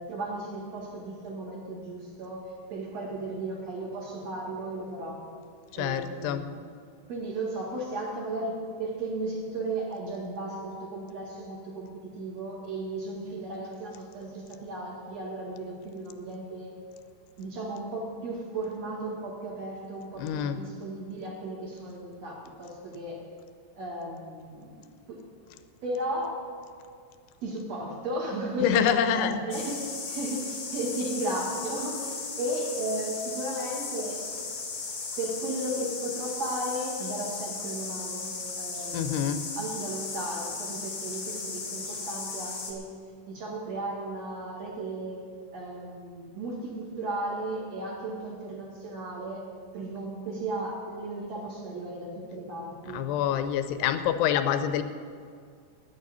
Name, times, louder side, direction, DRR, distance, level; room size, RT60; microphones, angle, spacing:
voice 1, 0.0-5.3 5.7-6.6 7.1-16.8 17.4-23.2 23.7-25.2 25.8-26.5 27.4-34.2 35.2-42.9 43.3-45.2 45.5-49.5 49.7-53.0, right 1 dB, 45° right, -1 dB, 2.7 m, -35 dB
voice 2, 5.7-6.4 20.2-20.6 28.6-29.4 38.9-39.4 52.9-54.8, left 9 dB, 85° left, 10 dB, 2.7 m, -26 dB
sound 1, 29.5-42.7, left 4 dB, 60° left, 1.1 m, -36 dB
10.0 x 9.4 x 9.5 m, 2.2 s
omnidirectional pair, 4.9 m